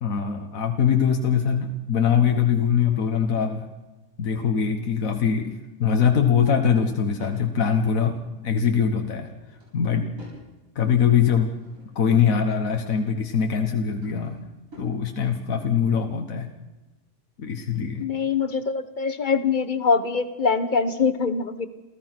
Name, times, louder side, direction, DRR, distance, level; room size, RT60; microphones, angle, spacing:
voice 1, 0.0-3.7 4.2-9.3 9.7-10.1 10.8-11.5 12.0-14.4 14.8-16.5 17.4-18.1, left 7 dB, 85° left, 4 dB, 1.7 m, -22 dB
Drawer open or close / Wood, 6.5-7.4 9.1-10.5 11.0-12.2 13.5-15.0, equal, 90° right, 8.4 m, -51 dB
voice 2, 18.0-21.7, left 5 dB, 35° left, 11 dB, 1.4 m, -23 dB
28.5 x 15.5 x 6.0 m, 1.1 s
omnidirectional pair, 1.4 m